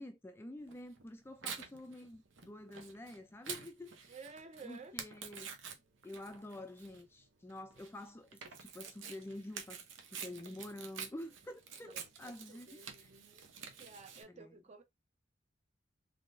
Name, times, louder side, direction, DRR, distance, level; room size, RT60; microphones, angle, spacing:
voice 1, 0.0-4.1 4.6-5.6 6.0-13.1 14.3-14.5, left 1 dB, 10° left, 0.3 m, -48 dB
Tearing, 0.7-14.2, right 6 dB, 75° right, 0.8 m, -49 dB
voice 2, 4.1-5.0 11.8-13.5 13.8-14.8, right 4 dB, 35° right, 0.7 m, -54 dB
3.6 x 3.2 x 2.5 m
head